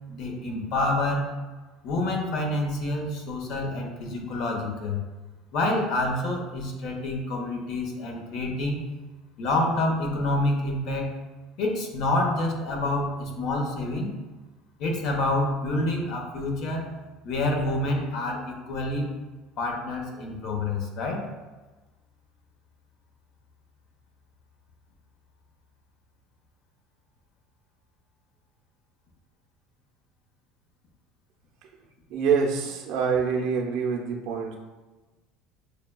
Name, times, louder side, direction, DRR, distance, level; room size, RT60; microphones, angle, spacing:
voice 1, 0.1-1.3 1.8-5.0 5.5-8.8 9.4-11.2 11.6-14.1 14.8-16.9 17.2-19.1 19.6-21.3, left 2 dB, 60° left, 2 dB, 0.9 m, -27 dB
voice 2, 32.1-34.5, right 6 dB, 65° right, 1 dB, 0.7 m, -25 dB
6.6 x 2.3 x 2.3 m, 1.2 s
supercardioid pair, 120°, 0 cm